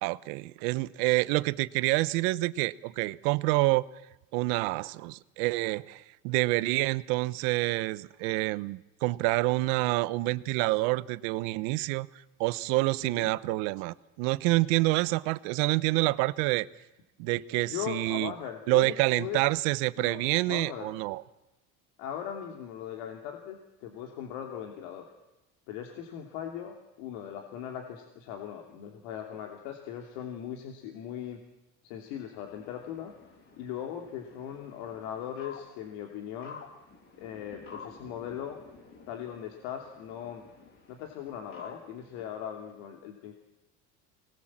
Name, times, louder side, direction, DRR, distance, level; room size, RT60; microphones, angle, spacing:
voice 1, 0.0-3.8 4.3-12.1 12.4-16.7 17.2-18.3 18.7-21.2, right 21 dB, 80° right, 1.0 m, -27 dB
voice 2, 17.7-19.4 20.0-20.9 22.0-25.1 25.7-31.4 31.8-33.1 33.6-36.6 37.2-38.6 39.1-40.4 40.9-43.3, left 9 dB, 80° left, 3.0 m, -39 dB
sound 1, 32.5-42.3, left 5 dB, 40° left, 4.9 m, -51 dB
24.5 x 20.0 x 7.4 m
cardioid pair, 140°, 34 cm